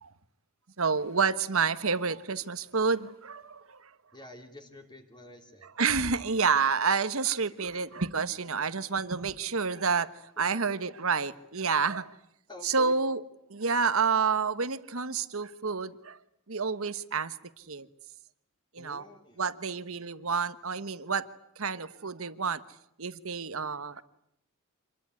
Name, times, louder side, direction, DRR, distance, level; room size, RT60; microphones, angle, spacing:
voice 1, 0.8-3.9 5.6-10.1 10.4-12.1 12.6-13.2 13.5-16.2 16.5-17.9 18.7-19.0 19.4-21.3 21.6-22.6 23.0-24.0, right 5 dB, 65° right, 13 dB, 1.3 m, -29 dB
voice 2, 4.1-5.7 10.5-10.8 12.5-13.0 18.8-19.4, equal, 20° left, 4 dB, 3.3 m, -48 dB
27.0 x 21.0 x 9.9 m, 0.78 s
head